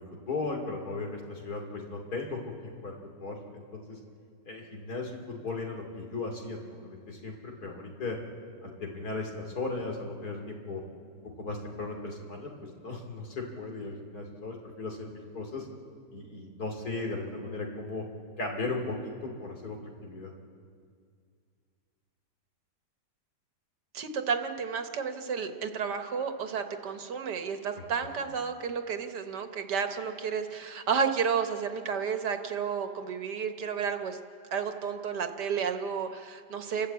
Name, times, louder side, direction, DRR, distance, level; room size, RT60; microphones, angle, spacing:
voice 1, 0.0-4.0 4.4-8.2 8.6-10.8 11.4-15.6 16.1-18.0 18.4-20.3, left 3 dB, 60° left, 2 dB, 3.1 m, -37 dB
voice 2, 23.9-34.2 34.5-36.9, right 6 dB, 75° right, 7 dB, 1.8 m, -31 dB
29.0 x 12.0 x 8.3 m, 2.2 s
omnidirectional pair, 1.8 m